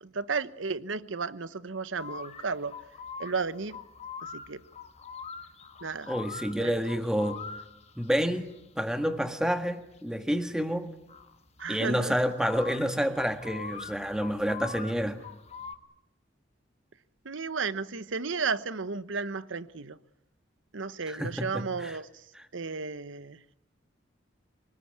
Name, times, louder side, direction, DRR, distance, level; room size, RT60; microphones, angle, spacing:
voice 1, 0.0-2.7 3.2-3.8 4.2-4.6 5.8-6.1 6.6-6.7 11.6-12.2 17.2-20.0 20.7-22.1 22.5-23.4, right 4 dB, 80° right, 1.0 m, -33 dB
sound 1, 2.0-15.7, left 5 dB, 35° left, 1.5 m, -44 dB
voice 2, 6.1-7.4 8.0-10.9 11.7-15.2 21.1-22.0 22.3-22.4, equal, 5° right, 1.7 m, -29 dB
25.5 x 19.0 x 9.9 m
head